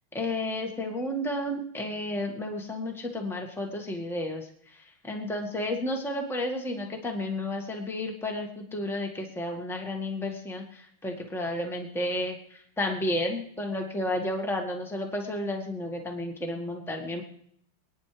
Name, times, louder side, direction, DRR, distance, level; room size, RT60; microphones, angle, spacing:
voice 1, 0.1-17.2, left 1 dB, ahead, 2 dB, 1.5 m, -32 dB
28.0 x 9.9 x 3.4 m, 0.68 s
omnidirectional pair, 2.4 m